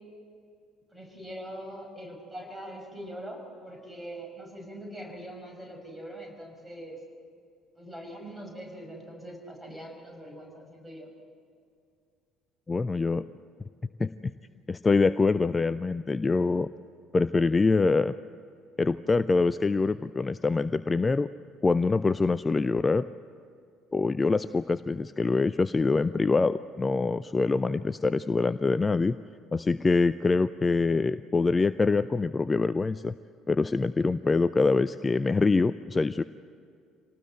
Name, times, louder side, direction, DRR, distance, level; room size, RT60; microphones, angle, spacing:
voice 1, 0.9-7.0 7.8-11.1, right 1 dB, 10° right, 3 dB, 5.7 m, -42 dB
voice 2, 12.7-13.2 14.0-14.1 14.7-16.7 17.1-18.1 18.8-21.3 21.6-23.1 23.9-29.2 29.5-33.1 33.5-36.2, left 3 dB, 20° left, 15 dB, 0.5 m, -25 dB
25.5 x 18.5 x 7.8 m, 2.4 s
figure-of-eight pair, 55°, 0 cm